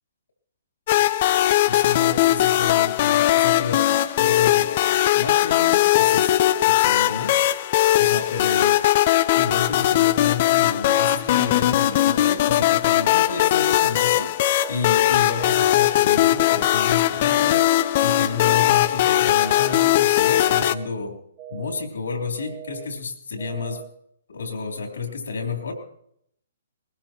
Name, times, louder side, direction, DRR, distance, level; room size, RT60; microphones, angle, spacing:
sound 1, 0.9-20.8, left 14 dB, 45° left, 0.6 m, -19 dB
voice 1, 1.7-3.9 4.2-4.7 5.1-6.3 6.6-7.4 8.0-8.9 9.3-14.4 14.7-17.7 18.0-21.2 21.5-23.8 24.3-25.7, left 5 dB, 75° left, 3 dB, 3.4 m, -30 dB
sound 2, 14.4-14.9 15.4-15.9 16.4-16.9 17.4-17.9 18.4-18.9 19.4-19.9 20.4-20.9 21.4-21.9 22.4-22.9 23.4-23.9, right 11 dB, 30° right, 2.1 m, -39 dB
20.5 x 19.0 x 3.0 m, 0.72 s
figure-of-eight pair, 130°, 0 cm